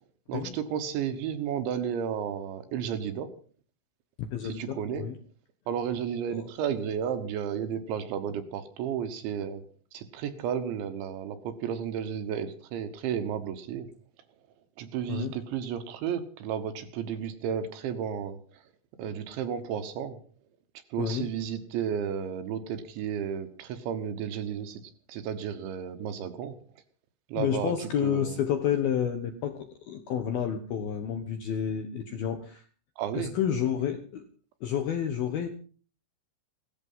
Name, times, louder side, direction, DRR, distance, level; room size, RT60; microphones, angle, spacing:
voice 1, 0.3-3.3 4.4-5.1 5.7-9.6 9.9-13.9 14.8-18.6 19.0-20.2 20.9-24.8 25.1-26.6 27.3-28.4 33.0-33.3, right 8 dB, 70° right, 9 dB, 3.3 m, -33 dB
voice 2, 4.2-5.2 6.3-6.4 15.1-15.3 21.0-21.3 27.4-32.6 33.1-34.2 34.6-35.5, left 9 dB, 70° left, 6 dB, 2.4 m, -30 dB
17.5 x 14.0 x 5.6 m, 0.41 s
omnidirectional pair, 6.0 m